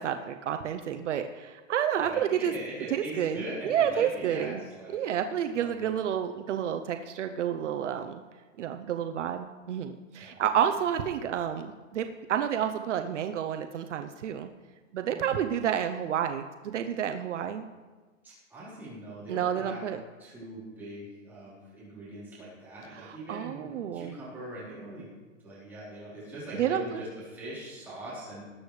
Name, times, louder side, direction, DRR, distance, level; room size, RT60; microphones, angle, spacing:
voice 1, 0.0-2.5 2.9-4.6 4.9-8.2 8.6-14.5 14.9-17.6 19.3-20.0 22.9-24.2 26.5-27.0, right 9 dB, 65° right, 7 dB, 0.7 m, -30 dB
voice 2, 2.0-5.0 5.6-5.9 10.2-10.4 15.1-15.5 18.2-19.9 20.2-25.1 25.4-28.4, right 1 dB, 5° right, -10 dB, 4.0 m, -42 dB
19.5 x 8.6 x 3.2 m, 1.3 s
hypercardioid pair, 175°, 39 cm